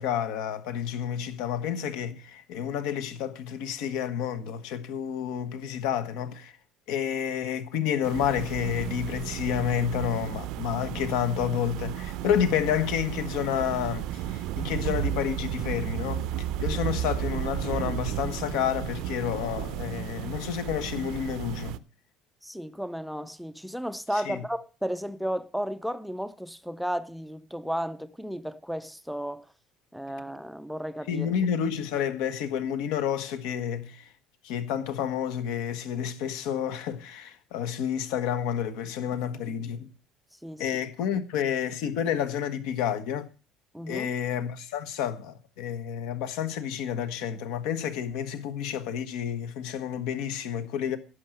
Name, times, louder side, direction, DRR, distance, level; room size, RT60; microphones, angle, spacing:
voice 1, 0.0-6.5 6.9-16.2 16.6-21.8 24.1-24.4 31.1-34.1 34.4-39.9 40.6-43.3 43.9-51.0, left 9 dB, 75° left, 1.4 m, -30 dB
sound 1, 8.0-21.8, right 12 dB, 65° right, 0.6 m, -33 dB
voice 2, 22.4-29.4 29.9-31.3 40.4-40.6 43.7-44.1, equal, ahead, 0.4 m, -33 dB
11.0 x 6.2 x 7.8 m
cardioid pair, 155°, 0 cm